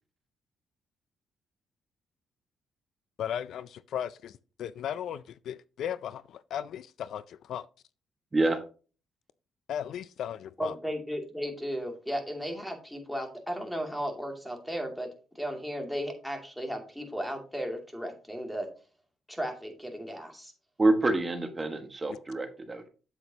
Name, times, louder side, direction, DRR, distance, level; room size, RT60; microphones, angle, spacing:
voice 1, 3.2-7.7 9.7-10.7 22.1-22.2, left 9 dB, 70° left, 0.4 m, -36 dB
voice 2, 10.6-15.1 15.3-18.7 19.3-20.5, equal, ahead, 2.4 m, -35 dB
voice 3, 20.8-22.9, right 2 dB, 25° right, 1.3 m, -27 dB
7.9 x 7.9 x 2.8 m
cardioid pair, 90°, 0 cm